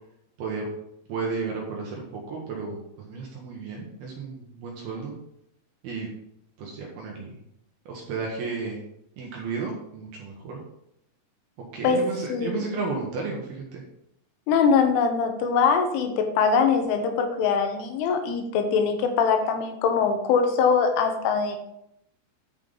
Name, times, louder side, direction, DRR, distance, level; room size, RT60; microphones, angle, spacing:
voice 1, 1.1-5.1 5.8-6.1 6.6-7.4 7.9-8.8 9.2-10.6 11.7-13.8, right 4 dB, 70° right, -1 dB, 2.5 m, -33 dB
voice 2, 12.3-12.6 14.5-21.6, left 5 dB, 80° left, 5 dB, 3.4 m, -22 dB
10.0 x 5.8 x 3.8 m, 0.77 s
omnidirectional pair, 5.7 m